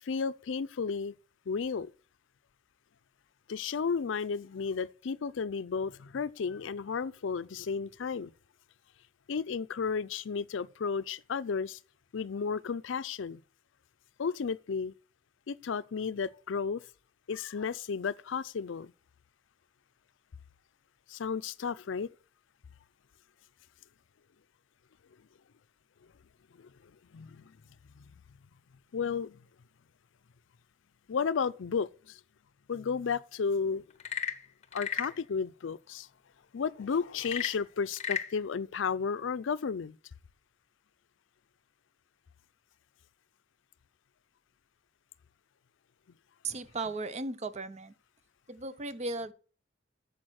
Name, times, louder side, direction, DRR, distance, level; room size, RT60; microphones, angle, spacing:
voice 1, 0.0-1.1 1.5-1.9 3.5-8.3 9.3-11.8 12.1-13.4 14.2-14.9 15.5-16.8 17.3-18.9 21.1-22.1 26.6-26.7 27.1-27.5 28.0-28.1 28.9-29.4 31.1-32.2 32.7-33.8 34.7-36.1 36.5-40.0, left 5 dB, 75° left, 0.5 m, -33 dB
Frog / Percussion / Wood, 33.9-35.2 37.2-38.3, left 8 dB, 35° left, 0.8 m, -34 dB
voice 2, 46.4-47.9 48.5-49.3, right 3 dB, 35° right, 0.7 m, -36 dB
8.7 x 7.1 x 6.3 m
head